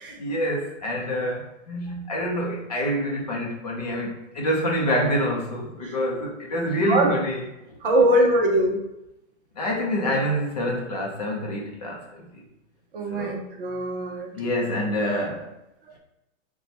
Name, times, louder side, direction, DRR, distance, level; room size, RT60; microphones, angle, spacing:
voice 1, 0.2-7.4 9.6-12.4 13.1-13.4 14.3-15.5, equal, 30° left, -1 dB, 0.5 m, -27 dB
voice 2, 7.8-8.8 12.9-14.4, right 1 dB, 40° right, 1 dB, 0.7 m, -22 dB
4.1 x 2.3 x 4.0 m, 0.90 s
hypercardioid pair, 170°, 40 cm